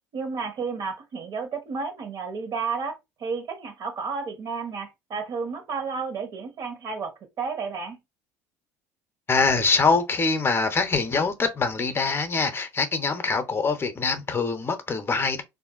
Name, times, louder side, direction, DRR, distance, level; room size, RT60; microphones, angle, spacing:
voice 1, 0.1-8.0, right 5 dB, 50° right, 1.2 m, -32 dB
voice 2, 9.3-15.4, left 4 dB, 30° left, 0.7 m, -24 dB
3.5 x 2.6 x 2.4 m
hypercardioid pair, 75°, 8 cm